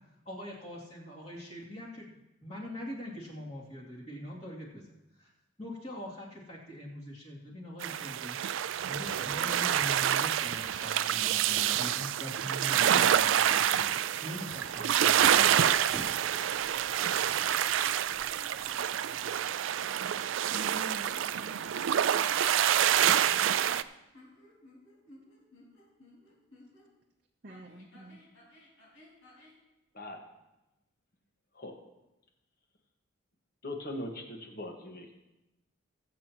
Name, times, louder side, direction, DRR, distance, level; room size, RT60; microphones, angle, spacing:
voice 1, 0.2-2.1 2.4-4.9 5.2-5.3 5.6-8.4 8.9-15.5 15.9-16.0, equal, 30° left, -5 dB, 2.6 m, -42 dB
sound 1, 7.8-23.8, right 10 dB, 75° right, 0.4 m, -27 dB
voice 2, 9.2-9.6 15.3-15.9 20.5-22.3 27.4-28.2, right 2 dB, 45° right, 0 dB, 0.7 m, -46 dB
sound 2, 14.7-23.9, right 1 dB, 10° right, 0.8 m, -53 dB
sound 3, 15.7-16.7 17.3-17.9 18.3-19.6 20.8-22.0 22.3-26.9 27.5-29.6, left 1 dB, 75° left, 4.2 m, -57 dB
voice 3, 33.6-35.1, left 1 dB, 45° left, 2 dB, 1.5 m, -40 dB
21.5 x 7.7 x 3.0 m, 0.95 s
head